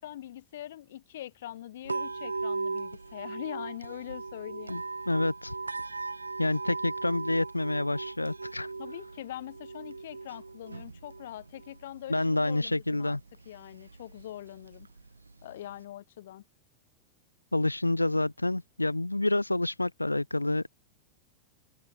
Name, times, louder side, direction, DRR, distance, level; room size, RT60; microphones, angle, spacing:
voice 1, 0.0-4.8 8.8-13.2 13.5-14.9 15.4-16.4, left 13 dB, 60° left, 5.6 m, -43 dB
sound 1, 1.8-15.8, right 3 dB, 80° right, 0.7 m, -39 dB
voice 2, 5.1-5.6 6.4-8.7 12.1-13.2 17.5-20.7, left 2 dB, 85° left, 0.5 m, -28 dB
open air
figure-of-eight pair, 90°, 0 cm